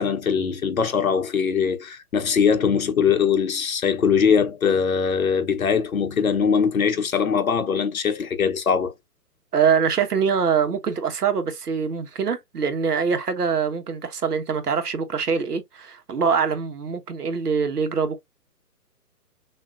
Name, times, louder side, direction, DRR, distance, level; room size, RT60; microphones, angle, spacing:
voice 1, 0.0-8.9, left 6 dB, 60° left, 1.2 m, -21 dB
voice 2, 9.5-18.2, right 6 dB, 70° right, 1.4 m, -24 dB
6.6 x 2.9 x 2.5 m
hypercardioid pair, 175°, 48 cm